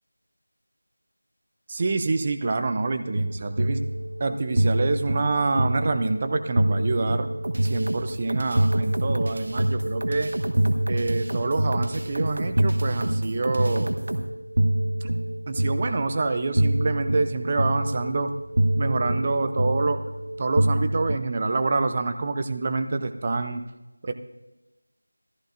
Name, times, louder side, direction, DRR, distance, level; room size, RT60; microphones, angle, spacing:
voice 1, 1.7-3.8 4.2-7.3 7.6-10.3 10.9-14.0 15.0-15.1 15.5-18.3 18.8-20.0 20.4-23.6 24.0-24.1, right 3 dB, 20° right, 8 dB, 0.5 m, -26 dB
sound 1, 3.1-21.2, right 1 dB, 80° right, 0.5 m, -26 dB
sound 2, 7.4-14.3, right 1 dB, 60° right, 1.0 m, -31 dB
16.5 x 14.5 x 2.5 m, 1.0 s
figure-of-eight pair, 175°, 0 cm